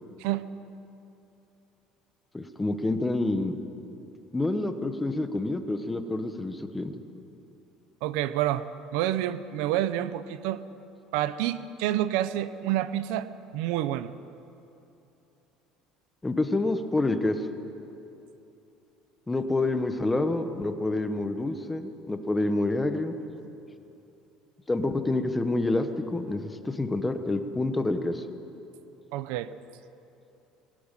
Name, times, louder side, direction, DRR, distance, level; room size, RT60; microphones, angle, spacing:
voice 1, 2.3-3.6 4.3-6.9 16.2-17.5 19.3-23.1 24.7-28.2, left 2 dB, 10° left, 8 dB, 1.1 m, -28 dB
voice 2, 8.0-8.7 8.9-10.6 11.1-14.1 29.1-29.5, right 13 dB, 85° right, 14 dB, 0.9 m, -28 dB
21.5 x 17.0 x 9.1 m, 2.8 s
cardioid pair, 160°, 0 cm